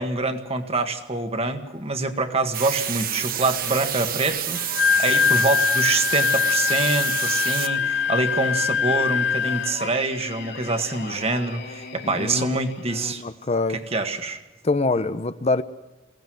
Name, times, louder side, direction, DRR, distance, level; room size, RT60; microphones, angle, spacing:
voice 1, 0.0-13.2 13.7-14.4, right 3 dB, 35° right, 7 dB, 1.8 m, -26 dB
sound 1, 2.5-7.7, right 10 dB, 50° right, 1.5 m, -28 dB
Wind instrument woodwind instrument, 4.6-9.9, left 6 dB, 80° left, 0.7 m, -23 dB
Singing, 7.6-13.6, left 4 dB, 60° left, 3.4 m, -40 dB
voice 2, 12.0-12.6 12.9-13.8 14.6-15.6, left 3 dB, 35° left, 12 dB, 0.7 m, -25 dB
22.5 x 17.5 x 7.7 m, 1.1 s
head